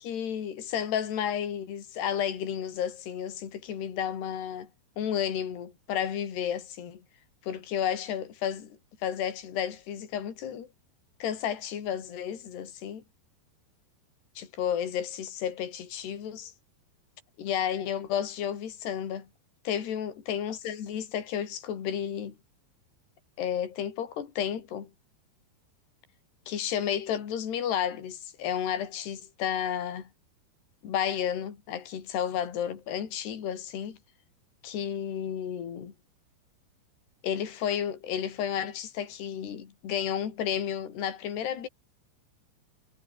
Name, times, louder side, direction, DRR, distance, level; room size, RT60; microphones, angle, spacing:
voice 1, 0.0-4.7 5.0-7.0 7.4-10.7 11.2-13.0 14.4-16.5 17.4-19.3 19.7-22.4 23.4-24.9 26.5-30.1 30.8-34.0 34.6-35.9 37.2-41.7, left 9 dB, 65° left, 5.5 m, -32 dB
omnidirectional pair, 5.2 m